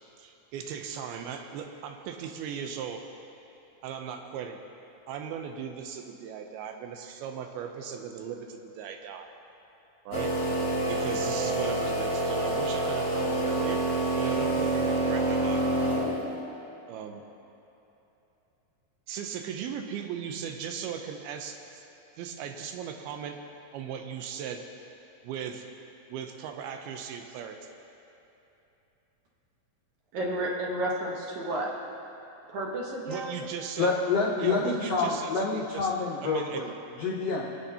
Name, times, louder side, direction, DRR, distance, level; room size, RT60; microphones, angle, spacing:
voice 1, 0.2-3.0 3.8-4.6 5.1-9.3 10.1-10.4 10.9-13.8 14.2-15.7 16.9-17.2 19.1-21.8 22.2-23.4 23.7-24.6 25.2-25.7 26.1-27.7 33.1-33.9 34.4-35.9 36.2-36.6, right 7 dB, 90° right, 5 dB, 2.7 m, -37 dB
sound 1, 10.1-16.4, right 2 dB, 50° left, 1.2 m, -27 dB
voice 2, 30.1-31.7 32.5-33.4, right 1 dB, 65° right, -2 dB, 2.2 m, -31 dB
voice 3, 33.8-36.7 37.0-37.4, left 4 dB, 75° left, -4 dB, 1.4 m, -27 dB
24.0 x 8.1 x 2.9 m, 3.0 s
omnidirectional pair, 4.3 m